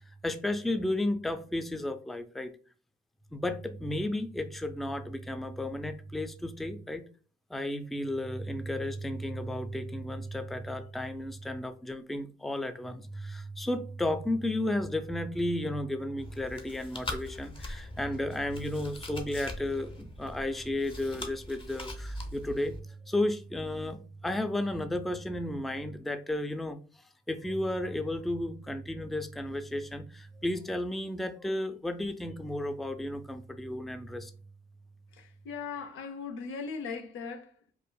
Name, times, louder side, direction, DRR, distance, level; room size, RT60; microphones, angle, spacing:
voice 1, 0.0-2.5 3.3-7.0 7.5-26.8 27.3-34.3, left 1 dB, ahead, 0.3 m, -33 dB
Chewing mastication, 16.2-22.8, left 1 dB, 25° left, 0.7 m, -42 dB
voice 2, 35.1-37.7, left 5 dB, 85° left, 0.7 m, -39 dB
4.6 x 2.4 x 2.2 m
cardioid pair, 90°, 20 cm